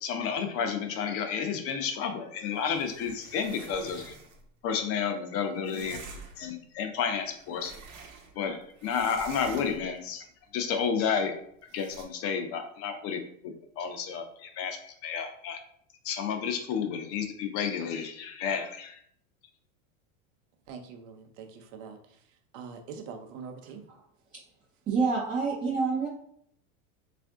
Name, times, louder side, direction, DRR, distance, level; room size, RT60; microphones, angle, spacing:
voice 1, 0.0-4.1 4.6-6.0 6.4-7.7 8.4-10.3 10.5-11.3 11.7-13.2 13.8-15.6 16.0-19.0, left 6 dB, 35° left, 6 dB, 0.5 m, -31 dB
sound 1, 2.5-4.5 5.6-6.5 7.1-8.5 8.8-10.0 11.7-12.0, right 4 dB, 90° right, 1.0 m, -47 dB
voice 2, 20.7-23.9, right 5 dB, 65° right, 5 dB, 0.7 m, -44 dB
voice 3, 24.9-26.1, right 4 dB, 20° right, -4 dB, 0.5 m, -27 dB
3.4 x 2.5 x 3.5 m, 0.67 s
supercardioid pair, 130°, 42 cm